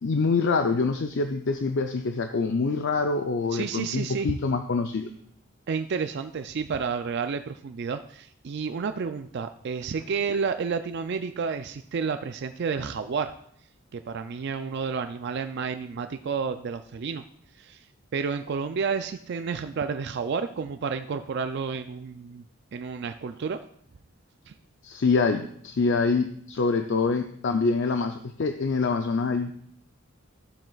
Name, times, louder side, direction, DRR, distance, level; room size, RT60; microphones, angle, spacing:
voice 1, 0.0-5.1 24.8-29.7, left 4 dB, 60° left, 6 dB, 0.5 m, -25 dB
voice 2, 3.5-4.3 5.7-13.3 13.9-17.2 17.6-17.8 18.1-22.4 22.7-23.6 24.5-24.6, right 5 dB, 55° right, 8 dB, 0.4 m, -30 dB
14.0 x 7.5 x 2.3 m, 0.66 s
head